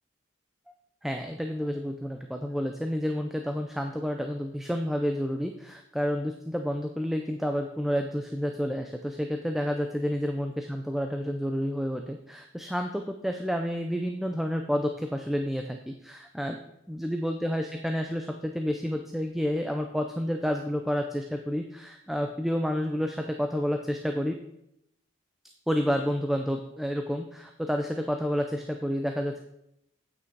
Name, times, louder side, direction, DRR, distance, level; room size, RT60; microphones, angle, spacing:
voice 1, 1.0-16.6 16.9-24.4 25.7-29.4, equal, ahead, 4 dB, 0.4 m, -30 dB
8.7 x 5.9 x 4.6 m, 0.79 s
head